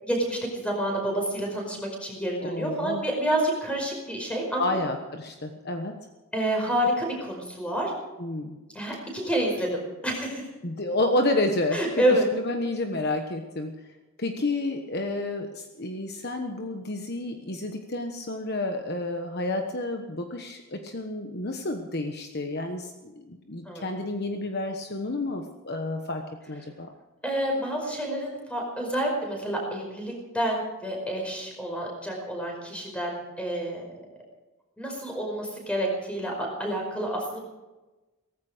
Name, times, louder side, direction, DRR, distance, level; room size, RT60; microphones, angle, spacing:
voice 1, 0.0-4.8 6.3-7.9 8.7-10.5 11.7-12.3 23.6-23.8 27.2-33.8 34.8-37.4, right 1 dB, 5° left, 0 dB, 5.1 m, -28 dB
voice 2, 2.4-3.0 4.6-6.0 8.2-8.6 10.6-13.7 14.2-26.9, left 2 dB, 45° left, 5 dB, 1.2 m, -30 dB
18.0 x 15.0 x 5.1 m, 1.1 s
head